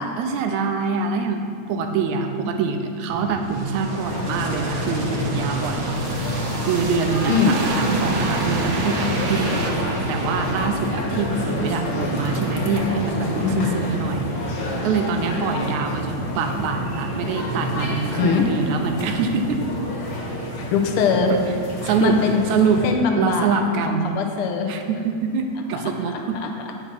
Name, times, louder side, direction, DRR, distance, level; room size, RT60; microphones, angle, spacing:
voice 1, 0.2-6.0 6.6-19.6 21.8-22.2 22.5-22.8 23.2-24.1 24.7-26.4, right 5 dB, 80° right, 5 dB, 2.0 m, -25 dB
sound 1, 3.1-11.4 11.8-11.9, right 2 dB, 60° right, 2.0 m, -29 dB
sound 2, 4.0-22.9, left 1 dB, 55° left, 2.9 m, -28 dB
voice 2, 7.3-7.6 13.4-13.7 18.2-18.5 20.6-21.3 21.8-22.4 22.8-24.7 26.1-26.5, left 6 dB, 80° left, 3 dB, 1.2 m, -22 dB
10.0 x 5.8 x 5.9 m, 2.4 s
omnidirectional pair, 3.4 m